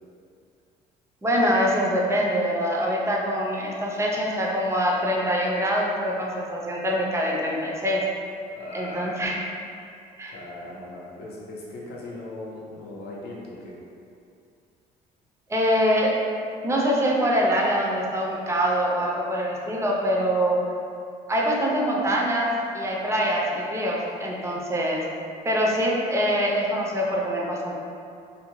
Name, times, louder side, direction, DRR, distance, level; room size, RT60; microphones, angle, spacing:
voice 1, 1.2-8.0 8.7-9.4 10.2-10.3 15.5-16.1 16.6-20.6 21.3-25.0 25.4-27.8, equal, 15° right, -3 dB, 0.4 m, -24 dB
voice 2, 8.5-9.3 10.3-13.8, left 2 dB, 75° left, -4 dB, 0.6 m, -38 dB
2.5 x 2.1 x 2.9 m, 2.4 s
cardioid pair, 110°, 17 cm